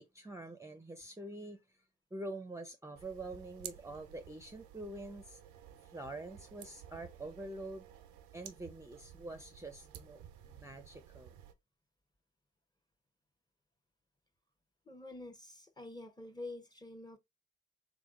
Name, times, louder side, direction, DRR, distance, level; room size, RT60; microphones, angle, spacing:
voice 1, 0.0-1.8 2.1-5.4 5.9-7.9 8.3-11.3, right 2 dB, 10° right, 0.6 m, -46 dB
sound 1, 2.9-11.5, right 10 dB, 90° right, 0.5 m, -54 dB
voice 2, 14.9-17.2, left 2 dB, 15° left, 0.9 m, -47 dB
3.6 x 3.4 x 2.4 m
hypercardioid pair, 40°, 29 cm